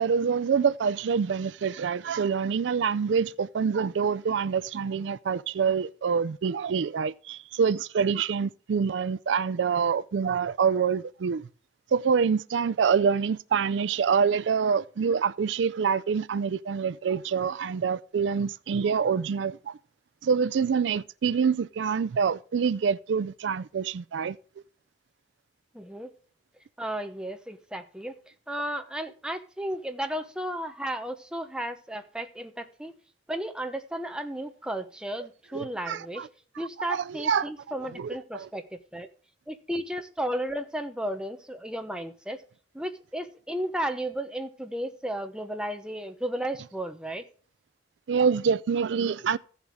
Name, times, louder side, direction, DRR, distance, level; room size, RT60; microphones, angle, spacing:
voice 1, 0.0-11.5 11.9-19.7 20.2-24.4 35.5-36.3 36.9-37.5 38.0-38.5 48.1-49.4, right 6 dB, 80° right, 0.4 m, -26 dB
voice 2, 25.7-26.1 26.8-28.1 28.5-32.9 33.3-36.3 36.6-39.1 39.5-42.4 42.7-47.3, right 1 dB, 5° right, 1.0 m, -34 dB
15.0 x 7.3 x 3.6 m
head